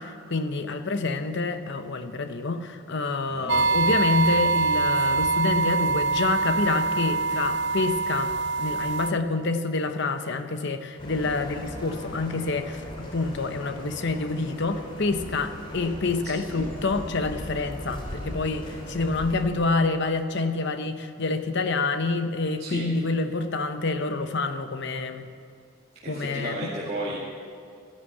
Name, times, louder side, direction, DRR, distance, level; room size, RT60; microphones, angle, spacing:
voice 1, 0.0-25.3 26.1-26.7, left 3 dB, 55° left, 8 dB, 0.9 m, -27 dB
voice 2, 3.3-3.6 16.2-16.7 22.6-22.9 26.0-27.2, right 1 dB, 30° right, -7 dB, 2.0 m, -34 dB
sound 1, 3.5-9.1, right 4 dB, 55° right, 0.5 m, -24 dB
sound 2, 11.0-19.4, equal, 25° left, 2.7 m, -39 dB
13.0 x 11.0 x 7.9 m, 2.3 s
head